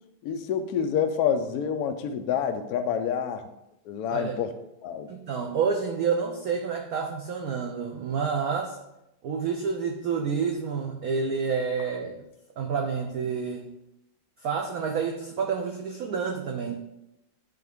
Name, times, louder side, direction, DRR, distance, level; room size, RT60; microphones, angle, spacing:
voice 1, 0.2-3.5 3.9-4.6 4.8-5.1, left 7 dB, 75° left, 7 dB, 0.8 m, -27 dB
voice 2, 5.1-8.8 9.2-12.2 12.6-13.7 14.4-16.8, right 6 dB, 80° right, 3 dB, 0.8 m, -29 dB
9.3 x 3.5 x 3.5 m, 0.87 s
omnidirectional pair, 2.2 m